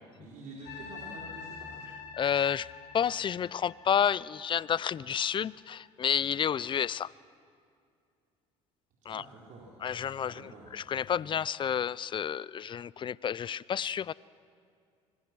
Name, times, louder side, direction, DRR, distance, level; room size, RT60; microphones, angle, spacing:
voice 1, 0.2-2.0 9.1-9.8 10.3-10.7, right 3 dB, 65° right, -5 dB, 4.5 m, -48 dB
sound 1, 0.7-5.9 6.5-6.7, left 6 dB, 75° left, 3.8 m, -47 dB
voice 2, 2.2-2.7 2.9-7.1 9.1-9.2 9.8-10.4 10.7-14.1, left 8 dB, 35° left, 22 dB, 0.4 m, -30 dB
25.0 x 22.0 x 6.2 m, 2.4 s
supercardioid pair, 80°, 14 cm